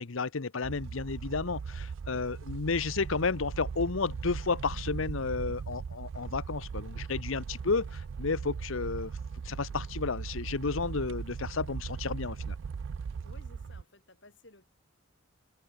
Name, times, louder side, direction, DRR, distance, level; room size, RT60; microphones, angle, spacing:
voice 1, 0.0-9.1 9.4-12.5, left 4 dB, 75° left, 0.8 m, -32 dB
sound 1, 0.6-13.8, right 5 dB, 70° right, 0.4 m, -39 dB
voice 2, 13.2-14.7, left 2 dB, 60° left, 7.0 m, -57 dB
head